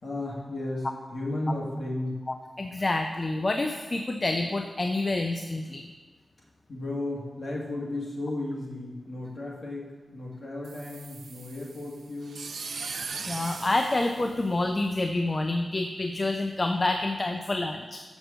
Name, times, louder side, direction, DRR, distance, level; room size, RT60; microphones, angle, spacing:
voice 1, 0.0-2.3 6.4-12.5, left 2 dB, 45° left, -4 dB, 2.0 m, -34 dB
voice 2, 2.6-5.9 13.3-18.0, left 2 dB, 30° left, 5 dB, 0.4 m, -28 dB
sound 1, 10.6-15.0, right 4 dB, 70° right, 0.5 m, -39 dB
6.5 x 6.2 x 6.6 m, 1.3 s
wide cardioid pair, 135°, 0 cm